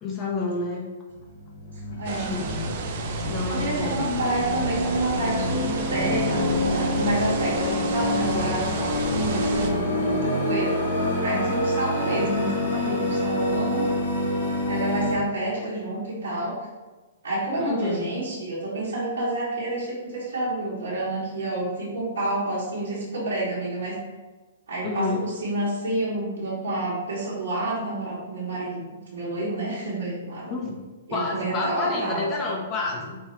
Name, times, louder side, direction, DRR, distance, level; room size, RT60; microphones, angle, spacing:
voice 1, 0.0-0.9 2.1-2.7 3.3-4.1 11.9-12.3 15.5-15.7 17.6-18.0 24.8-25.3 30.5-30.8 31.1-33.2, left 3 dB, 25° left, -2 dB, 0.9 m, -29 dB
sound 1, 1.1-15.1, left 1 dB, 65° left, 1.1 m, -26 dB
sound 2, 2.0-9.7, right 5 dB, 50° right, 0.5 m, -33 dB
voice 2, 2.0-2.3 3.5-9.0 9.2-10.7 11.2-13.9 14.7-16.5 17.2-24.0 24.7-30.5 31.1-32.4, right 1 dB, 80° right, -9 dB, 1.3 m, -29 dB
5.3 x 2.3 x 3.1 m, 1.2 s
hypercardioid pair, 120°, 0 cm